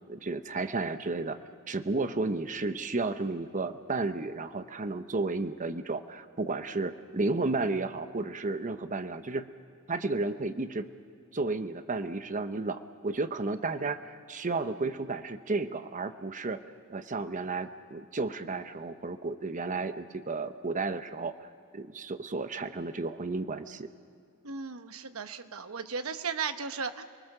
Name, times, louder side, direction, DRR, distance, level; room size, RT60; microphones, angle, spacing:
voice 1, 0.1-1.4 1.7-9.5 9.9-10.9 11.3-16.6 16.9-21.3 21.7-23.9, right 3 dB, 35° right, 10 dB, 0.8 m, -32 dB
voice 2, 24.4-27.0, right 5 dB, 70° right, 9 dB, 1.1 m, -35 dB
29.0 x 20.0 x 6.6 m, 2.3 s
head